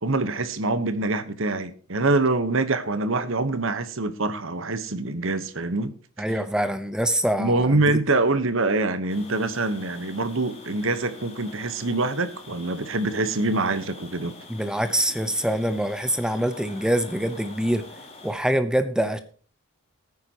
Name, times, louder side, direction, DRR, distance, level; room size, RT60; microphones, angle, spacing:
voice 1, 0.0-5.9 6.3-6.4 7.4-14.3, right 2 dB, 60° right, 1.1 m, -25 dB
voice 2, 6.2-7.8 14.5-17.8 18.2-19.2, right 1 dB, 5° right, 0.7 m, -24 dB
sound 1, 9.1-18.3, left 2 dB, 30° left, 3.1 m, -45 dB
18.0 x 9.6 x 2.9 m
head